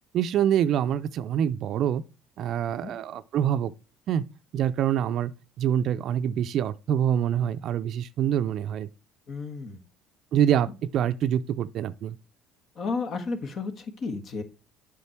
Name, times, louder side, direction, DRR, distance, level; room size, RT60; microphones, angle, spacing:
voice 1, 0.1-2.0 2.4-3.7 4.1-4.2 4.5-5.3 5.6-8.9 10.3-12.2, right 10 dB, 60° right, 0.5 m, -25 dB
voice 2, 9.3-9.8 12.8-14.4, left 4 dB, 50° left, 1.5 m, -32 dB
8.3 x 5.1 x 4.5 m
hypercardioid pair, 70°, 0 cm